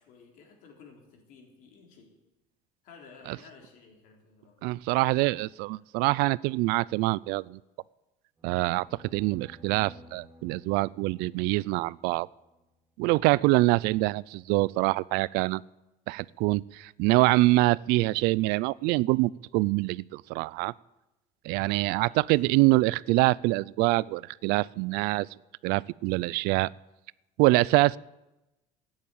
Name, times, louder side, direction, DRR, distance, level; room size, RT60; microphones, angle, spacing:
voice 1, 0.0-2.1 2.8-4.7 13.6-13.8 21.6-22.2 22.4-22.6 26.0-26.2, left 5 dB, 60° left, 2 dB, 3.8 m, -54 dB
voice 2, 4.6-7.6 8.4-8.9 9.1-12.3 13.0-15.6 16.1-20.7 21.4-25.3 25.6-26.7 27.4-28.0, right 21 dB, 80° right, 23 dB, 0.4 m, -25 dB
sound 1, 8.4-12.6, equal, 20° right, 3.6 m, -55 dB
13.5 x 9.7 x 8.9 m, 0.96 s
cardioid pair, 165°, 16 cm